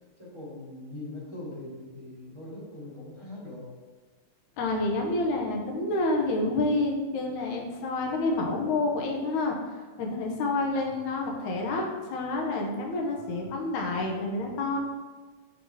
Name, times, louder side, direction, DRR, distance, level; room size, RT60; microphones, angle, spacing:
voice 1, 0.2-3.7 10.7-11.0 13.1-13.6, left 2 dB, 30° right, -9 dB, 1.6 m, -42 dB
voice 2, 4.6-9.6 10.0-14.8, left 2 dB, 80° left, 0 dB, 2.2 m, -28 dB
6.2 x 3.6 x 4.7 m, 1.4 s
omnidirectional pair, 3.4 m